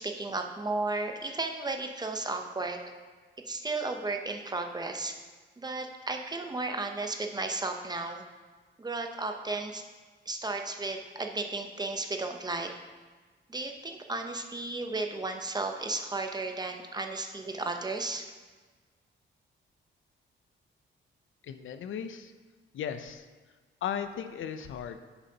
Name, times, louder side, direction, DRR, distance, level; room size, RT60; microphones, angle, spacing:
voice 1, 0.0-2.8 3.4-5.2 5.6-8.2 8.8-9.9 10.3-12.7 13.5-18.2, right 3 dB, 20° right, 4 dB, 0.7 m, -34 dB
voice 2, 21.4-22.3 22.7-23.3 23.8-25.0, left 8 dB, 75° left, 9 dB, 0.6 m, -36 dB
10.5 x 7.0 x 2.9 m, 1.4 s
cardioid pair, 115°, 21 cm